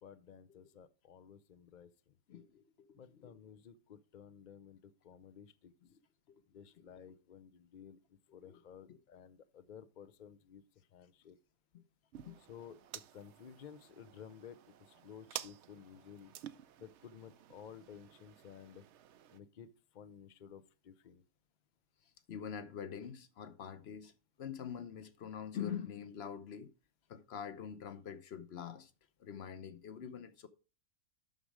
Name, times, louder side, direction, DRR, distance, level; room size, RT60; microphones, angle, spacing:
voice 1, 0.0-2.1 2.9-5.7 6.5-11.4 12.5-16.3 16.8-18.8 19.3-21.2, left 8 dB, 70° left, 0.4 m, -54 dB
voice 2, 2.3-3.3 5.9-6.0 6.3-6.4 8.5-8.6 8.9-9.0 11.7-11.8 12.2-12.4 22.3-24.1 24.4-26.7 27.1-28.9 29.2-30.5, left 8 dB, 55° left, 0.8 m, -45 dB
sound 1, 12.1-19.4, right 11 dB, 65° right, 0.7 m, -51 dB
9.1 x 6.4 x 4.9 m
omnidirectional pair, 1.6 m